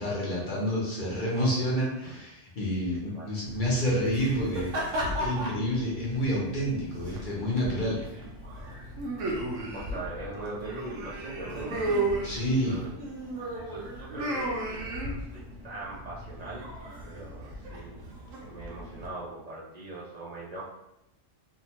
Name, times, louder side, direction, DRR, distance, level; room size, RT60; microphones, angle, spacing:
voice 1, 0.0-8.0 12.2-12.8, equal, 50° left, -5 dB, 0.8 m, -29 dB
voice 2, 2.9-3.3 9.3-12.0 12.6-12.9 13.6-16.7 17.0-18.0 18.4-20.6, right 2 dB, 60° right, -7 dB, 0.4 m, -41 dB
sound 1, 3.4-19.1, right 1 dB, 90° right, 1.0 m, -35 dB
sound 2, 10.3-13.5, left 1 dB, 75° left, 0.9 m, -46 dB
2.7 x 2.1 x 2.9 m, 0.85 s
omnidirectional pair, 1.3 m